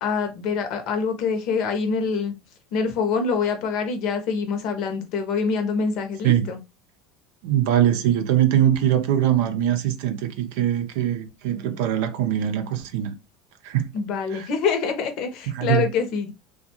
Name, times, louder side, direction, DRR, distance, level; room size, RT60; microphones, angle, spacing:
voice 1, 0.0-2.3 2.7-6.6 13.9-16.3, left 5 dB, 60° left, 0.7 m, -25 dB
voice 2, 7.4-13.1 13.6-13.9 14.3-14.5 15.5-15.9, right 11 dB, 75° right, 0.5 m, -22 dB
2.5 x 2.3 x 2.8 m
supercardioid pair, 100°, 0 cm